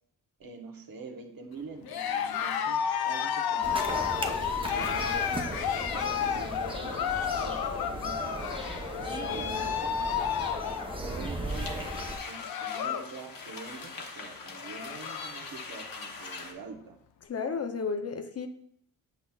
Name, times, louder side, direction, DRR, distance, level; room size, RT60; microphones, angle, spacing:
voice 1, 0.4-7.1 7.4-10.0 11.0-17.0, right 4 dB, 70° right, 3 dB, 1.0 m, -46 dB
Cheering, 1.8-13.1 13.4-13.8 14.2-14.3 14.5-15.4, left 8 dB, 85° left, 0.5 m, -32 dB
sound 1, 3.6-12.2, right 2 dB, 15° right, 0.7 m, -37 dB
voice 2, 9.3-9.8 17.2-18.5, left 5 dB, 45° left, 7 dB, 0.6 m, -34 dB
sound 2, 11.5-16.5, left 4 dB, 65° left, 1.0 m, -42 dB
8.1 x 5.5 x 2.3 m, 0.67 s
cardioid pair, 65°, 36 cm